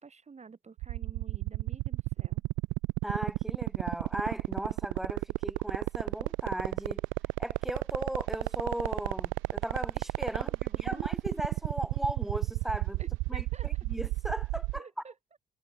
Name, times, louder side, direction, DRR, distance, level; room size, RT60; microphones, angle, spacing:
voice 1, 0.0-2.4 10.4-11.1 13.0-13.7 14.8-15.1, right 5 dB, 35° right, 4.1 m, -50 dB
sound 1, 0.8-14.8, right 22 dB, 75° right, 0.4 m, -31 dB
voice 2, 3.0-7.0 7.4-13.0 13.3-14.9, equal, ahead, 5.0 m, -37 dB
supercardioid pair, 70°, 20 cm